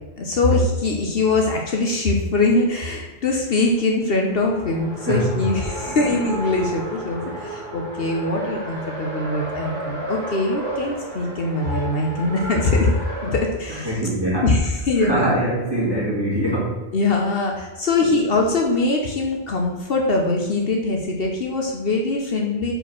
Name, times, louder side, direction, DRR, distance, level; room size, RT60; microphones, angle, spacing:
voice 1, 0.2-12.9 13.2-14.0 14.4-15.3 16.9-22.7, left 2 dB, 60° left, 1 dB, 1.1 m, -22 dB
Race car auto racing, 4.2-13.4, equal, 45° left, 2.4 m, -32 dB
voice 2, 5.1-5.4 5.8-6.2 7.3-7.4 13.7-14.5 15.0-16.8, right 1 dB, 20° right, -7 dB, 2.4 m, -23 dB
5.1 x 4.6 x 6.0 m, 1.2 s
omnidirectional pair, 1.1 m